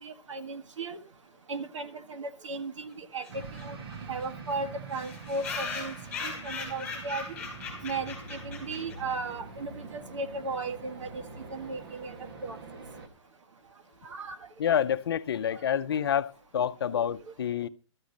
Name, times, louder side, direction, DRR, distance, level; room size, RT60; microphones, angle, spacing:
voice 1, 0.0-1.0 1.5-3.3 3.6-3.8 4.1-5.9 6.2-7.4 7.8-11.2 11.5-12.1 12.4-12.6 14.0-14.4, right 3 dB, 85° right, 1.7 m, -36 dB
sound 1, 3.2-3.3 3.6-3.7 3.9-4.0 4.2-4.3 4.9-9.1, left 4 dB, 5° left, 4.0 m, -38 dB
sound 2, 3.3-13.1, right 4 dB, 50° right, 2.0 m, -45 dB
sound 3, 7.3-13.1, left 2 dB, 15° right, 2.4 m, -53 dB
voice 2, 14.6-17.7, left 9 dB, 55° left, 0.6 m, -28 dB
12.5 x 6.5 x 7.1 m
hypercardioid pair, 175°, 15 cm